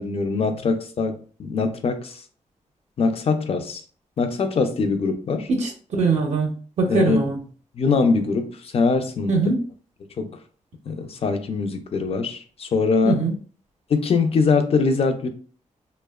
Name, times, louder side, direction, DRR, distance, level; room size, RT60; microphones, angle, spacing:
voice 1, 0.0-2.2 3.0-3.8 4.2-5.5 6.9-7.2 7.8-9.3 10.2-10.3 10.9-13.2 13.9-15.3, left 4 dB, 50° left, 0.4 m, -22 dB
voice 2, 5.5-6.5 6.8-7.4 9.3-9.6 13.0-13.3, right 3 dB, 60° right, 0.5 m, -21 dB
2.7 x 2.0 x 2.2 m
cardioid pair, 95°, 13 cm